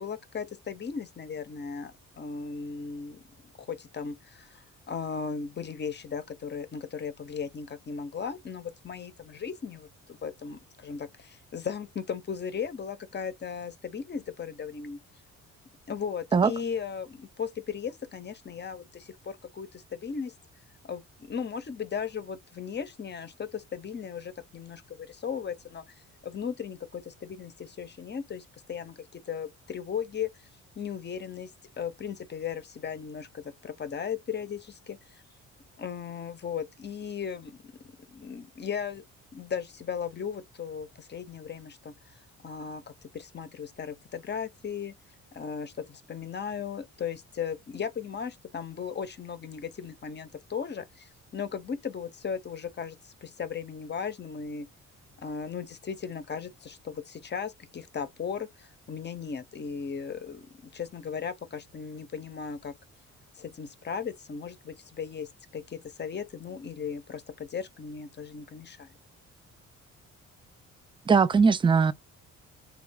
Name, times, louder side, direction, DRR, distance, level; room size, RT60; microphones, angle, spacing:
voice 1, 0.0-3.2 3.6-15.0 15.9-20.3 20.8-25.9 26.2-30.3 30.8-31.5 31.8-35.2 35.8-37.6 38.1-39.0 39.3-41.9 42.4-44.9 45.3-54.7 55.2-62.7 63.4-69.0, left 6 dB, 35° left, 0.7 m, -37 dB
voice 2, 71.1-71.9, right 5 dB, 15° right, 0.3 m, -20 dB
3.2 x 2.3 x 3.5 m
cardioid pair, 90°, 30 cm